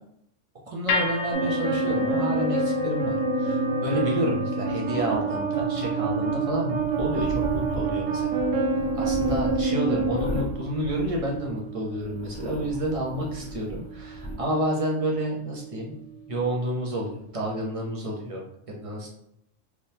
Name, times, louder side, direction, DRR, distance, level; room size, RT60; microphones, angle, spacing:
voice 1, 0.7-8.5 8.9-15.9 16.3-19.1, right 1 dB, 30° right, -2 dB, 0.7 m, -30 dB
sound 1, 0.9-17.1, equal, 70° left, 1.0 m, -36 dB
sound 2, 1.3-10.4, right 3 dB, 75° right, 1.0 m, -26 dB
sound 3, 6.8-11.6 12.0-14.4, left 1 dB, 15° left, 0.7 m, -37 dB
3.6 x 3.1 x 2.8 m, 0.75 s
omnidirectional pair, 1.3 m